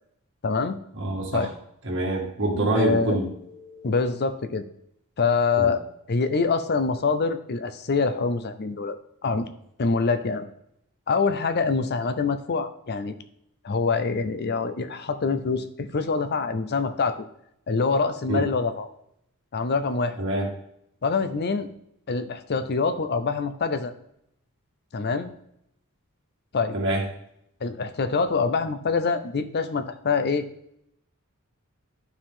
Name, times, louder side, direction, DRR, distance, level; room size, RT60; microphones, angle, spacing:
voice 1, 0.4-0.8 1.3-1.5 2.7-3.2 3.8-4.6 5.2-5.8 6.1-9.0 9.2-9.5 9.8-10.5 11.1-13.1 13.6-17.2 17.7-18.9 19.5-20.2 21.0-21.7 22.1-23.9 24.9-25.3 26.5-26.8 27.6-30.5, left 4 dB, 50° left, 10 dB, 0.6 m, -25 dB
voice 2, 0.9-1.5 1.8-4.0 5.6-5.7 18.3-18.4 20.2-20.5 26.7-27.0, right 2 dB, 55° right, -2 dB, 2.1 m, -26 dB
11.5 x 4.7 x 3.7 m, 0.73 s
head